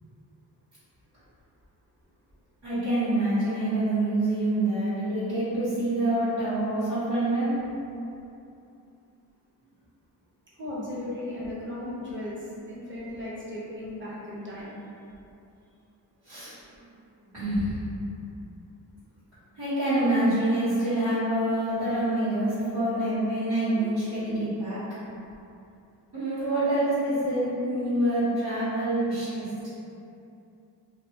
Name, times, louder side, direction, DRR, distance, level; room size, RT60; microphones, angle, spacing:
voice 1, 2.6-7.6 16.2-16.5 17.3-17.8 19.6-24.8 26.1-29.5, right 1 dB, 80° right, -18 dB, 1.3 m, -26 dB
voice 2, 10.5-14.8 23.8-23.9 24.3-24.4, left 1 dB, 25° right, -8 dB, 1.0 m, -36 dB
2.5 x 2.2 x 2.8 m, 2.7 s
cardioid pair, 50°, 44 cm